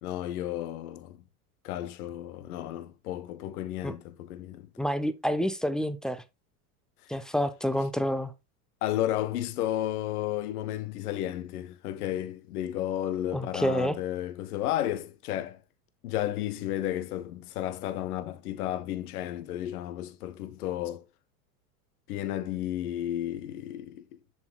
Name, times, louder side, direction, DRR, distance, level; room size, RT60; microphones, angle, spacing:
voice 1, 0.0-1.2 1.6-4.7 7.0-7.2 8.8-15.6 16.0-21.0 22.1-24.2, left 12 dB, 75° left, 0.8 m, -33 dB
voice 2, 4.8-6.2 7.1-8.3 13.3-14.0, equal, ahead, 0.4 m, -28 dB
7.3 x 7.2 x 2.2 m
hypercardioid pair, 95°, 46 cm